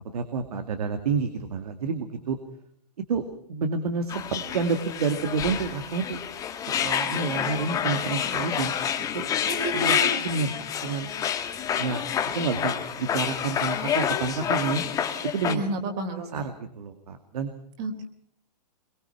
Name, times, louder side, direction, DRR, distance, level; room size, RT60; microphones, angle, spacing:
voice 1, 0.1-2.4 3.1-3.2 3.5-6.2 6.8-8.7 9.1-9.4 9.7-11.1 11.8-12.1 12.3-14.8 15.3-15.6 16.2-17.5, right 5 dB, 65° right, 8 dB, 2.3 m, -29 dB
sound 1, 4.1-15.5, left 8 dB, 15° left, 1.6 m, -28 dB
voice 2, 9.5-10.1 15.5-16.4 17.8-18.1, right 2 dB, 35° right, 5 dB, 4.0 m, -30 dB
23.0 x 22.0 x 5.8 m, 0.64 s
hypercardioid pair, 145°, 21 cm